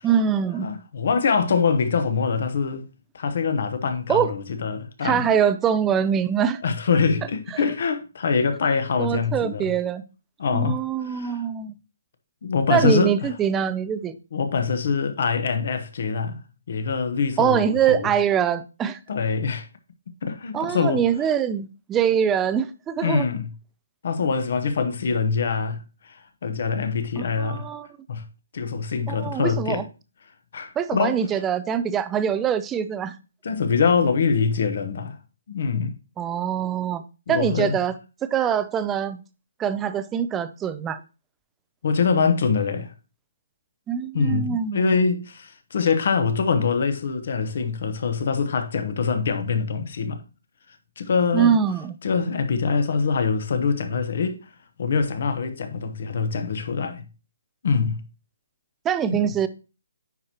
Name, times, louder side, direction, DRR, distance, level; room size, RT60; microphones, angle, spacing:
voice 1, 0.0-0.7 4.1-4.3 5.0-6.6 9.0-10.0 10.5-11.7 12.7-14.2 17.4-19.0 20.5-23.3 27.2-27.9 29.1-29.8 30.8-33.2 36.2-37.9 38.3-39.2 39.6-41.0 43.9-45.0 51.3-52.0 58.8-59.5, right 8 dB, 10° right, 0.3 m, -23 dB
voice 2, 0.6-2.8 3.1-5.2 6.6-9.7 10.4-11.4 12.4-13.1 14.3-16.4 16.7-18.1 19.1-19.7 20.2-21.0 23.0-23.5 24.0-25.8 26.0-26.2 26.4-27.7 28.1-28.2 28.5-29.8 30.5-31.2 33.4-35.2 35.5-35.9 37.3-37.8 41.8-42.9 44.1-50.2 51.0-51.6 52.0-54.4 54.8-57.1 57.6-58.0 59.1-59.2, left 5 dB, 50° left, 1.0 m, -24 dB
9.7 x 4.4 x 2.9 m
hypercardioid pair, 170°, 0 cm